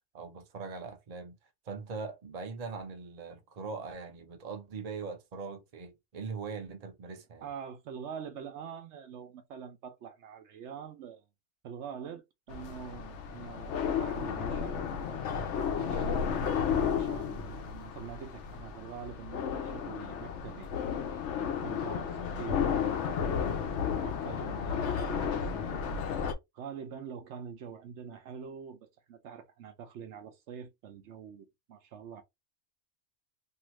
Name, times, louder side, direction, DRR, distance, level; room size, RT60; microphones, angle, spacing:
voice 1, 0.1-1.4 1.6-7.5, right 4 dB, 40° right, 0.7 m, -41 dB
voice 2, 7.4-11.2 11.6-14.7 15.7-16.2 16.9-20.7 21.4-23.5 24.0-25.8 26.5-32.2, right 7 dB, 75° right, 0.9 m, -45 dB
sound 1, 12.5-26.3, left 7 dB, 75° left, 0.9 m, -33 dB
2.7 x 2.5 x 3.0 m
omnidirectional pair, 1.2 m